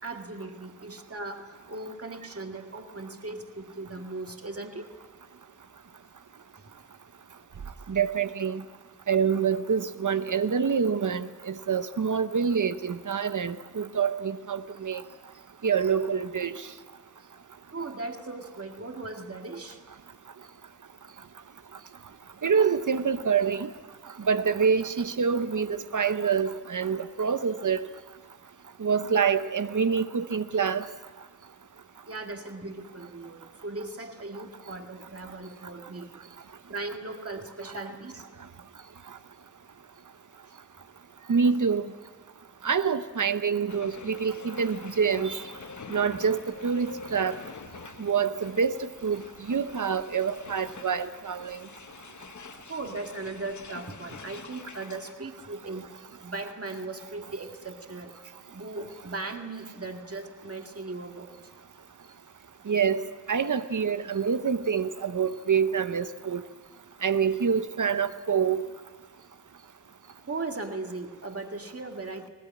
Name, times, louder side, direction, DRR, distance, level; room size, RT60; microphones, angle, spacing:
voice 1, 0.0-4.9 7.9-8.0 17.7-19.8 32.1-36.2 36.7-38.3 40.5-40.6 46.0-46.1 52.7-55.9 56.2-58.1 58.5-61.5 70.3-72.3, right 3 dB, 50° right, 4 dB, 2.0 m, -38 dB
voice 2, 7.9-8.6 9.1-15.0 15.6-16.7 22.4-23.7 24.2-27.8 28.8-30.9 41.3-41.8 42.6-45.5 45.9-47.4 48.0-51.6 62.7-63.0 63.3-66.4 67.0-68.7, right 6 dB, 85° right, 11 dB, 0.9 m, -26 dB
sound 1, 43.7-55.1, left 5 dB, 75° left, 0.9 m, -46 dB
19.5 x 19.0 x 8.6 m, 1.4 s
wide cardioid pair, 70°, 30 cm